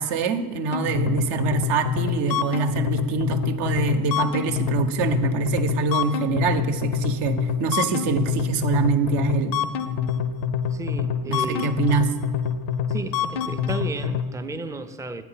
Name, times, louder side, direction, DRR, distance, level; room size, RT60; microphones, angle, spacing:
voice 1, 0.0-9.6 11.3-12.1, right 5 dB, 65° right, 7 dB, 0.7 m, -24 dB
sound 1, 0.7-14.2, left 7 dB, 70° left, 0.6 m, -26 dB
voice 2, 10.7-11.8 12.9-15.2, right 3 dB, 10° right, 8 dB, 0.4 m, -33 dB
8.1 x 4.5 x 5.5 m, 1.4 s
hypercardioid pair, 45°, 45 cm